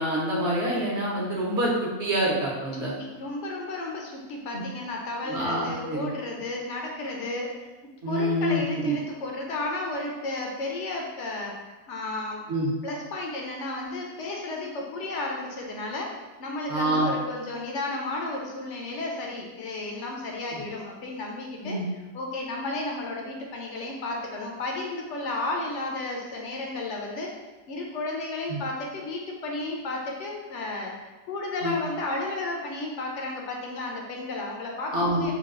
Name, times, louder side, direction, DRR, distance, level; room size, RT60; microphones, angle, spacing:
voice 1, 0.0-2.9 4.5-4.6 5.3-6.1 8.0-8.9 12.5-12.7 16.7-17.1 20.5-20.6 21.6-21.9 28.5-28.6 31.6-31.7 34.9-35.3, right 1 dB, 55° right, -5 dB, 1.0 m, -26 dB
voice 2, 2.8-7.7 8.1-12.4 12.8-21.8 22.1-27.3 27.7-35.3, left 2 dB, 65° left, 0 dB, 0.7 m, -33 dB
4.0 x 2.3 x 3.6 m, 1.2 s
omnidirectional pair, 1.7 m